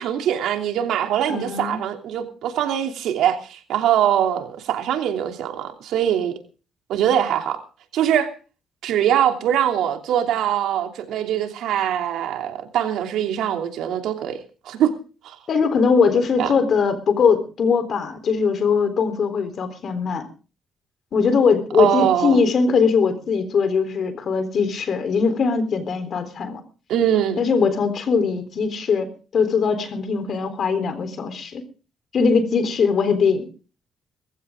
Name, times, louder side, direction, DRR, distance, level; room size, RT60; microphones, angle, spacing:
voice 1, 0.0-6.3 6.9-7.6 7.9-8.3 8.8-14.9 15.2-15.4 16.4-16.5 21.8-22.4 26.9-27.4, right 10 dB, 85° right, 2.9 m, -22 dB
voice 2, 1.3-1.8 15.5-20.2 21.1-26.6 27.4-31.6 32.1-33.5, left 5 dB, 55° left, 3.7 m, -21 dB
20.0 x 15.0 x 3.8 m
cardioid pair, 90°, 0 cm